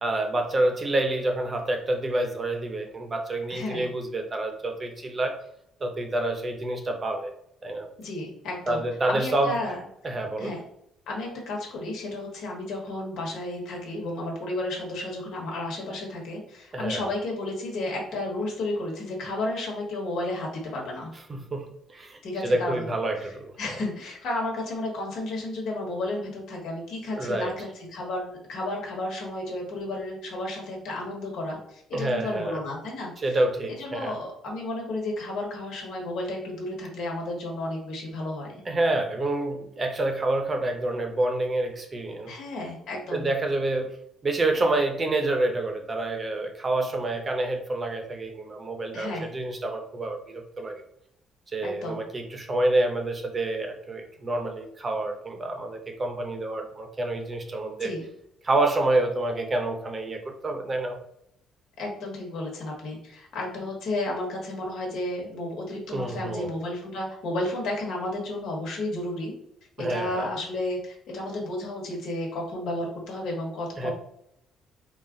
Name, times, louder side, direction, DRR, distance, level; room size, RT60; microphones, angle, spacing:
voice 1, 0.0-5.4 5.8-7.3 7.6-7.9 8.7-9.5 10.0-10.5 16.7-17.0 21.3-21.7 21.9-23.5 27.2-27.5 31.9-32.6 33.2-34.2 38.7-42.3 43.1-43.9 44.2-50.8 51.5-57.9 58.4-61.0 65.9-66.5 69.8-70.3 73.8-73.9, right 2 dB, 30° right, 4 dB, 0.7 m, -28 dB
voice 2, 3.5-3.9 8.0-9.8 10.4-10.6 11.1-21.1 22.2-22.9 23.6-33.1 33.7-38.6 42.3-43.3 48.9-49.3 51.6-52.0 57.8-58.1 61.8-69.3 69.8-73.9, left 1 dB, 75° left, -1 dB, 1.4 m, -32 dB
3.9 x 2.4 x 3.7 m, 0.74 s
cardioid pair, 105°, 0 cm